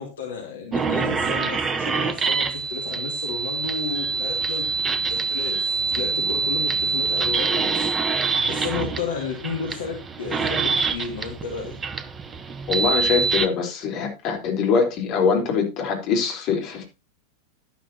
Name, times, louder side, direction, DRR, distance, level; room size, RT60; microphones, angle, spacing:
voice 1, 0.0-4.7 5.1-7.9 8.2-11.7, left 5 dB, 60° left, 2 dB, 2.6 m, -32 dB
sound 1, 0.7-13.5, right 4 dB, 20° right, 1.0 m, -25 dB
voice 2, 12.7-16.8, left 6 dB, 40° left, 2 dB, 4.1 m, -23 dB
11.5 x 11.5 x 2.9 m, 0.28 s
figure-of-eight pair, 90°, 0 cm